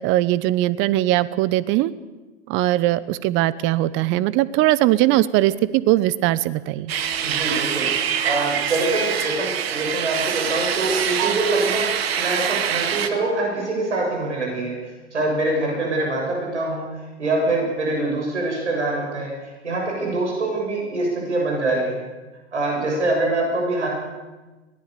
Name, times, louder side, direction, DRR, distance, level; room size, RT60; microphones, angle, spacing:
voice 1, 0.0-1.9 2.5-6.9, right 15 dB, 35° right, 18 dB, 1.0 m, -20 dB
sound 1, 6.9-13.1, right 8 dB, 60° right, 1.9 m, -24 dB
voice 2, 7.2-22.0 22.5-23.9, right 2 dB, 80° right, -1 dB, 7.6 m, -24 dB
23.0 x 18.5 x 6.8 m, 1.2 s
figure-of-eight pair, 100°, 34 cm